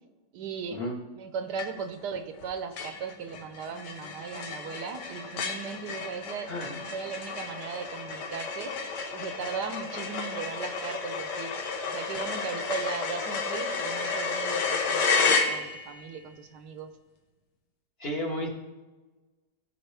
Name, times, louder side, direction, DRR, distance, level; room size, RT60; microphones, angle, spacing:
voice 1, 0.3-0.8 1.2-8.8 9.1-11.5 11.8-16.9, right 6 dB, 85° right, 8 dB, 1.4 m, -37 dB
sound 1, 1.6-2.0 2.4-2.5 2.8-16.0, left 4 dB, 85° left, 1.6 m, -31 dB
voice 2, 6.5-6.8 18.0-18.5, left 1 dB, 40° left, 0 dB, 1.4 m, -32 dB
15.0 x 5.5 x 3.4 m, 1.2 s
omnidirectional pair, 1.8 m